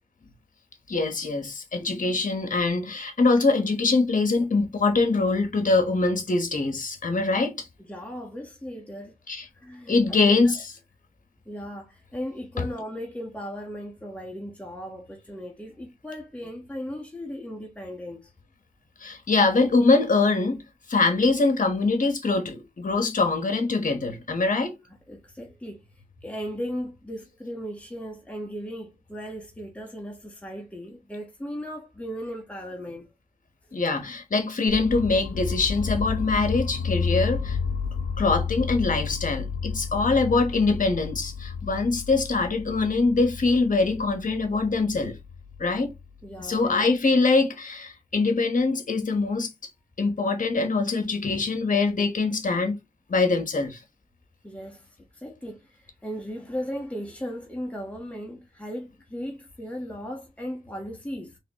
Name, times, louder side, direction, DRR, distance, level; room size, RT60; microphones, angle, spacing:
voice 1, 0.9-7.7 9.3-9.4 9.9-10.6 19.0-20.6 20.9-24.8 33.7-37.6 38.2-45.1 45.6-45.9 46.4-49.5 50.0-52.7 53.1-53.8, left 3 dB, 55° left, 1.1 m, -23 dB
voice 2, 7.8-10.5 11.5-18.3 24.7-24.8 25.1-25.9 26.2-33.1 46.2-46.9 54.4-61.4, equal, 10° left, 1.3 m, -37 dB
sound 1, 34.7-46.6, left 5 dB, 80° left, 0.6 m, -31 dB
4.0 x 3.1 x 2.9 m
cardioid pair, 40°, 16 cm